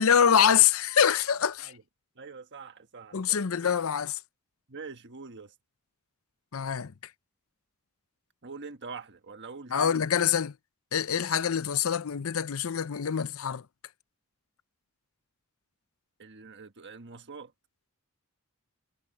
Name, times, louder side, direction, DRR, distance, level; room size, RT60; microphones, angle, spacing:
voice 1, 0.0-1.7 3.1-4.2 6.5-6.9 9.7-10.5 10.9-13.6, left 8 dB, 65° left, 0.6 m, -25 dB
voice 2, 2.2-3.4 4.7-5.5 8.4-10.0 16.2-17.5, right 4 dB, 55° right, 1.5 m, -44 dB
head